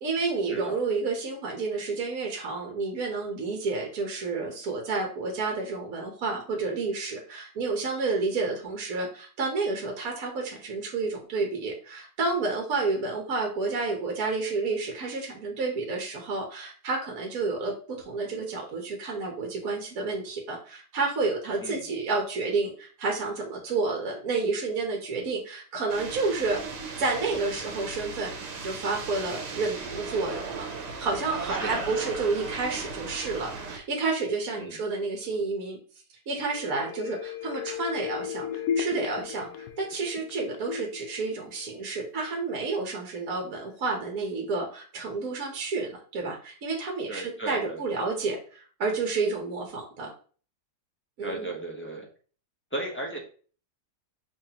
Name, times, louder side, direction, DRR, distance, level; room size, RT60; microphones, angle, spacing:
voice 1, 0.0-17.7 18.0-26.6 27.0-28.3 28.6-35.8 36.3-50.1 51.2-51.5, right 3 dB, 60° right, 1 dB, 1.3 m, -30 dB
sound 1, 25.9-33.8, right 4 dB, 80° right, 1.4 m, -37 dB
voice 2, 31.5-31.9 34.6-34.8 47.1-47.8 51.2-52.1 52.7-53.2, right 2 dB, 10° left, -2 dB, 0.6 m, -35 dB
sound 2, 36.5-42.2 42.5-42.6, left 8 dB, 70° left, 1.0 m, -35 dB
5.7 x 3.2 x 2.8 m, 0.41 s
omnidirectional pair, 1.8 m